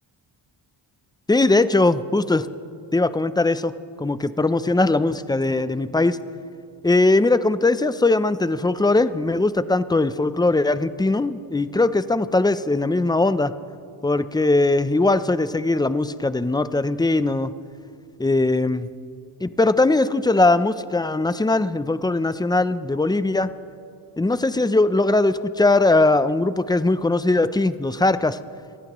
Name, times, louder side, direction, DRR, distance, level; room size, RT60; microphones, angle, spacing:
voice 1, 1.3-2.5 2.9-3.7 4.0-6.2 6.8-13.5 14.0-17.5 18.2-18.9 19.4-23.5 24.2-28.4, left 2 dB, 10° left, 13 dB, 0.4 m, -20 dB
28.5 x 15.5 x 3.0 m, 2.5 s
wide cardioid pair, 115°, 49 cm